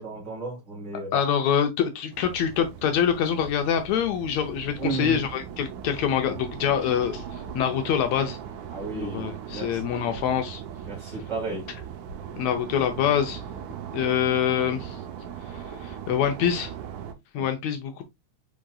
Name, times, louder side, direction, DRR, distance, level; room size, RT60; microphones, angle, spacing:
voice 1, 0.0-1.2 4.8-5.2 8.7-10.1 10.9-11.7 17.3-17.5, right 3 dB, 40° right, 2.5 m, -34 dB
voice 2, 1.1-8.4 8.9-10.6 12.4-13.4 13.9-15.0 15.5-16.7 17.3-18.0, left 8 dB, 75° left, 1.9 m, -25 dB
sound 1, 2.1-17.1, right 8 dB, 85° right, 2.3 m, -39 dB
5.9 x 3.8 x 2.3 m
omnidirectional pair, 3.3 m